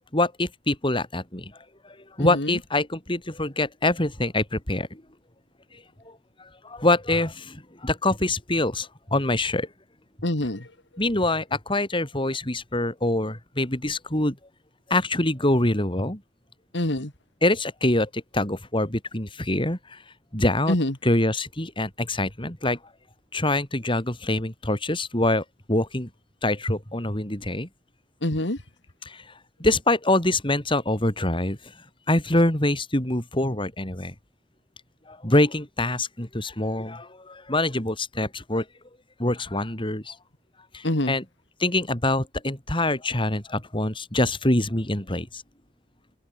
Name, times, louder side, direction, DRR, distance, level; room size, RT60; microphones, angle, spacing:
voice 1, 0.1-1.5 2.2-5.0 6.6-9.7 11.0-14.4 14.9-16.2 17.4-20.0 20.3-20.8 21.0-22.8 23.3-26.1 26.4-27.7 29.1-29.2 29.6-31.6 32.1-34.1 35.1-38.6 39.2-40.1 40.7-41.2 41.6-45.4, left 1 dB, 30° left, 5.6 m, -25 dB
voice 2, 2.2-2.6 10.2-10.7 16.7-17.1 20.7-20.9 28.2-28.6 40.8-41.1, left 1 dB, 80° left, 3.0 m, -25 dB
open air
head